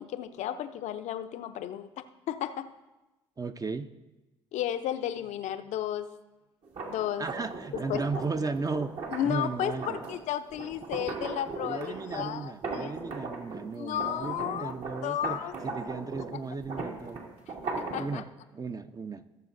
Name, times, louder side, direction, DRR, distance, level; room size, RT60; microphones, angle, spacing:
voice 1, 0.0-2.7 4.5-6.1 6.9-7.3 7.7-8.2 9.1-9.7 10.1-12.9 13.7-14.7 15.0-15.5 17.8-18.2, left 11 dB, 65° left, 9 dB, 0.6 m, -33 dB
voice 2, 3.4-3.9 7.2-8.9 9.2-10.0 11.6-17.2 18.0-18.3 18.5-19.2, right 4 dB, 25° right, 10 dB, 0.7 m, -35 dB
sound 1, 6.6-13.7 14.0-18.1, right 4 dB, 60° right, 2.0 m, -38 dB
18.5 x 7.0 x 2.6 m, 1.1 s
hypercardioid pair, 60°, 13 cm